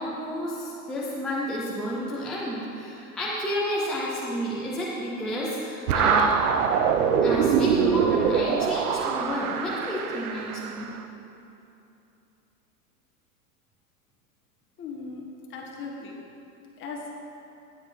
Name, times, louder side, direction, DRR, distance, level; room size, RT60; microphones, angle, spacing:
voice 1, 0.0-6.3 7.2-10.9, equal, ahead, -8 dB, 0.3 m, -30 dB
sound 1, 5.9-10.9, right 7 dB, 75° right, 0.8 m, -23 dB
voice 2, 14.8-15.2 15.5-16.2 16.8-17.2, left 4 dB, 25° left, -1 dB, 1.6 m, -38 dB
13.0 x 9.6 x 3.2 m, 2.8 s
supercardioid pair, 145°, 44 cm